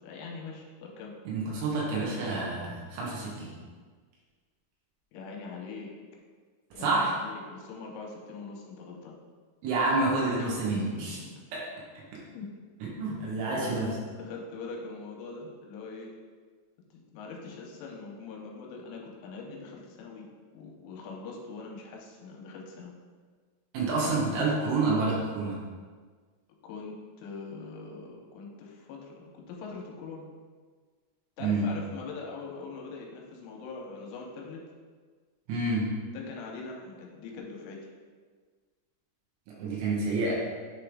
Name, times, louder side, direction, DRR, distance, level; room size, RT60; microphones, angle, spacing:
voice 1, 0.0-1.1 5.1-5.9 6.7-9.2 10.3-11.5 12.3-12.5 13.5-13.7 14.2-16.1 16.9-20.3 20.5-22.9 26.6-30.3 31.4-34.6 36.1-37.9, left 4 dB, 90° left, -1 dB, 3.3 m, -42 dB
voice 2, 1.3-3.5 6.8-7.2 9.6-11.2 11.5-11.6 12.1-12.2 13.0-13.9 23.7-25.6 31.4-31.7 35.5-35.9 39.6-40.3, right 3 dB, 80° right, -4 dB, 3.6 m, -28 dB
9.8 x 3.3 x 3.7 m, 1.5 s
omnidirectional pair, 5.8 m